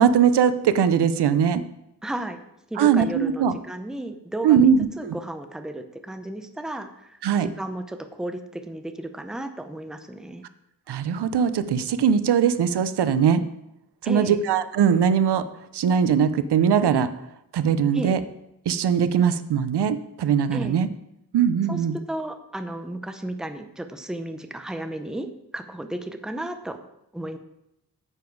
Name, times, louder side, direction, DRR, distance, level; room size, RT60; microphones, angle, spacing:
voice 1, 0.0-1.6 2.8-3.5 4.4-5.2 7.2-7.5 10.9-13.4 14.0-15.5 15.7-17.1 17.5-18.2 18.7-20.9 21.3-21.9, right 7 dB, 90° right, 13 dB, 0.7 m, -20 dB
voice 2, 2.0-2.4 2.7-10.4 14.1-14.4 17.9-18.2 20.5-20.8 21.7-21.8 22.1-26.8 27.1-27.4, right 1 dB, ahead, 7 dB, 0.6 m, -33 dB
9.8 x 7.2 x 4.7 m, 0.83 s
wide cardioid pair, 135°, 39 cm